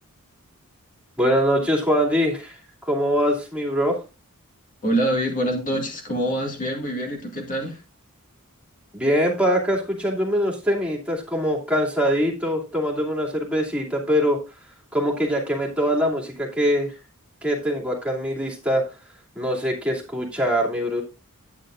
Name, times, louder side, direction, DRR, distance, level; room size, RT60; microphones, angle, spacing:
voice 1, 1.2-2.6 2.8-4.0 8.9-14.4 14.9-16.9 17.4-18.8 19.4-21.0, equal, 5° right, -2 dB, 2.6 m, -23 dB
voice 2, 4.8-7.8, right 1 dB, 35° left, 1 dB, 2.1 m, -25 dB
10.5 x 9.4 x 2.5 m, 0.28 s
head